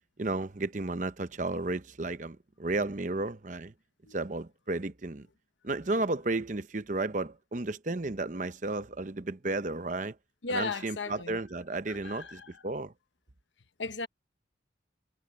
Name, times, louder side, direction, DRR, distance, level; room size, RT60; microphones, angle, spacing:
voice 1, 0.2-3.7 4.1-5.3 5.6-10.2 10.5-12.9, right 2 dB, 40° right, 0.8 m, -33 dB
voice 2, 10.4-11.4 11.9-12.5 13.8-14.1, left 3 dB, 85° left, 1.1 m, -35 dB
head